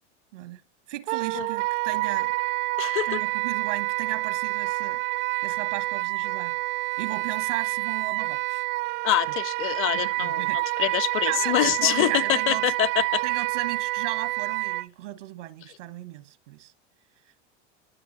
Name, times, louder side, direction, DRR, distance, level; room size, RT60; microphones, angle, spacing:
voice 1, 0.9-2.3 3.0-5.0 5.4-6.6 7.0-8.6 9.9-10.6 11.2-12.7 13.2-16.7, right 16 dB, 85° right, 1.5 m, -35 dB
Wind instrument woodwind instrument, 1.1-14.9, right 22 dB, 60° right, 0.5 m, -28 dB
voice 2, 2.8-3.2 9.0-10.5 10.8-13.2, left 13 dB, 35° left, 0.5 m, -25 dB
21.5 x 7.3 x 4.1 m
supercardioid pair, 115°, 36 cm